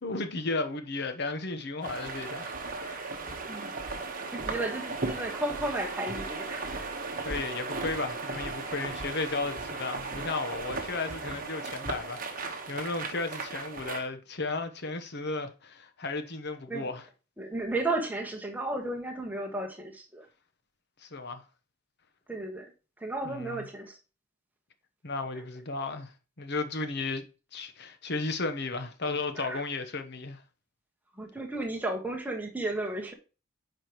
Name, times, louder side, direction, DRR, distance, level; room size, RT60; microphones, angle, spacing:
voice 1, 0.0-3.1 7.2-17.0 21.0-21.4 23.2-23.7 25.0-26.1 26.4-27.3 27.5-30.4, left 3 dB, 50° left, 1.0 m, -34 dB
sound 1, 1.8-14.0, right 3 dB, 40° right, 1.2 m, -36 dB
voice 2, 4.3-6.9 16.7-16.9 17.4-20.3 22.3-22.7 23.0-24.0 25.3-25.5 29.3-29.6 31.2-33.1, right 2 dB, 5° right, 1.3 m, -34 dB
8.7 x 5.0 x 3.0 m
head